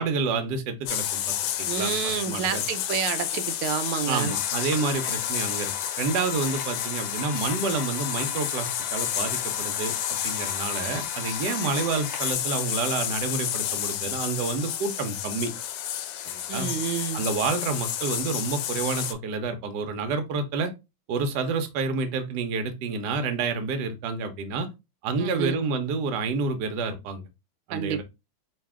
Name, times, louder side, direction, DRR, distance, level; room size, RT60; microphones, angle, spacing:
voice 1, 0.0-2.6 4.1-9.9 10.2-15.5 16.2-16.7 17.1-20.7 21.1-24.7 25.0-27.3 27.7-28.0, right 4 dB, 65° right, 1.1 m, -29 dB
sound 1, 0.9-19.1, left 11 dB, 90° left, 1.5 m, -30 dB
voice 2, 1.7-4.3 16.5-17.2 25.2-25.6 27.7-28.0, right 8 dB, 90° right, 1.5 m, -29 dB
sound 2, 4.3-12.3, left 5 dB, 65° left, 1.5 m, -39 dB
4.0 x 2.8 x 3.5 m
omnidirectional pair, 2.3 m